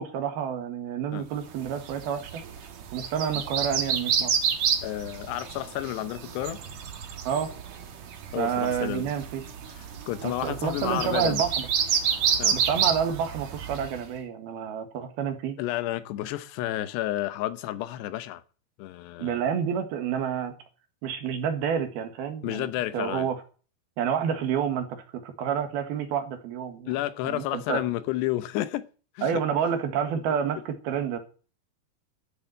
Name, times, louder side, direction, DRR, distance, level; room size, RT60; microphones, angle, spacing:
voice 1, 0.0-2.4 2.9-4.3 7.2-7.5 8.3-9.4 10.2-11.7 12.5-15.6 19.2-20.5 21.0-22.7 22.9-23.4 24.0-26.9 27.2-27.8 29.2-31.2, right 7 dB, 70° right, 3.5 m, -29 dB
sound 1, 1.6-14.0, right 7 dB, 55° right, 2.3 m, -29 dB
voice 2, 4.8-6.6 8.3-9.1 9.7-11.4 12.4-12.6 15.6-18.4 18.8-19.4 22.4-23.3 26.9-28.9 29.2-29.4 30.1-30.2, left 14 dB, 85° left, 3.0 m, -31 dB
13.0 x 7.0 x 9.3 m
omnidirectional pair, 4.8 m